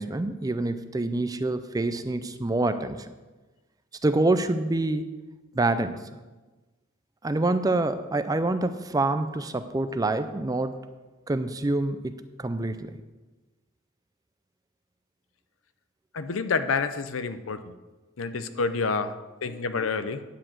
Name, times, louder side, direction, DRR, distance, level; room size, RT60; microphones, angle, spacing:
voice 1, 0.0-3.1 4.0-5.1 5.5-6.2 7.2-10.8 11.3-13.0, right 2 dB, 20° right, 10 dB, 0.4 m, -26 dB
voice 2, 16.1-17.7 18.2-20.2, left 4 dB, 80° left, 11 dB, 0.6 m, -28 dB
10.0 x 4.8 x 7.3 m, 1.2 s
head